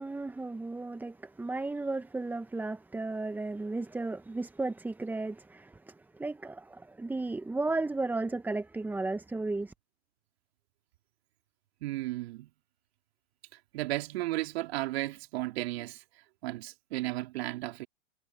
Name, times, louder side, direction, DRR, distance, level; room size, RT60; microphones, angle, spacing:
voice 1, 0.0-9.7, right 3 dB, 5° right, 0.8 m, -34 dB
voice 2, 11.8-12.5 13.7-16.0 16.4-17.9, right 17 dB, 55° right, 3.3 m, -34 dB
hypercardioid pair, 105°, 37 cm